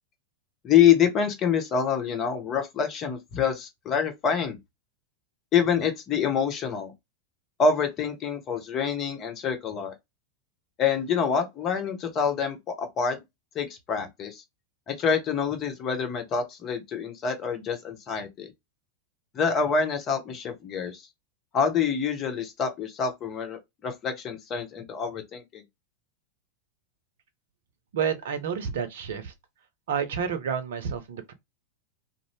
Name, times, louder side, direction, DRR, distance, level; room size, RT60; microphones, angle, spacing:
voice 1, 0.6-4.6 5.5-6.9 7.6-9.9 10.8-13.2 13.5-14.4 14.9-18.5 19.3-21.0 21.5-25.6, left 7 dB, 35° left, 0.9 m, -26 dB
voice 2, 27.9-29.3 29.9-31.3, right 7 dB, 65° right, 0.6 m, -29 dB
2.6 x 2.0 x 3.2 m
figure-of-eight pair, 90°, 0 cm